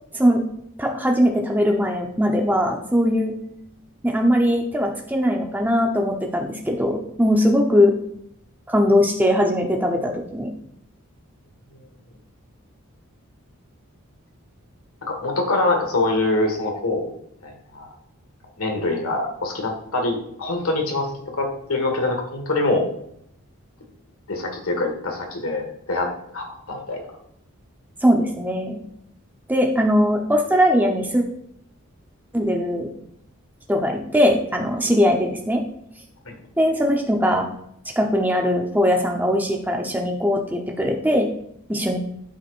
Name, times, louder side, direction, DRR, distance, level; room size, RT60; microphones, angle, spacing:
voice 1, 0.8-3.3 4.0-7.9 8.7-10.5 28.0-28.8 29.5-31.2 32.3-32.9 33.7-35.6 36.6-37.5 38.0-41.3 41.7-42.0, equal, 10° right, 1 dB, 0.9 m, -20 dB
voice 2, 15.0-17.1 17.4-17.9 18.6-22.9 24.3-27.0 36.3-36.4, left 2 dB, 75° left, 2 dB, 1.8 m, -24 dB
12.0 x 4.9 x 2.5 m, 0.73 s
head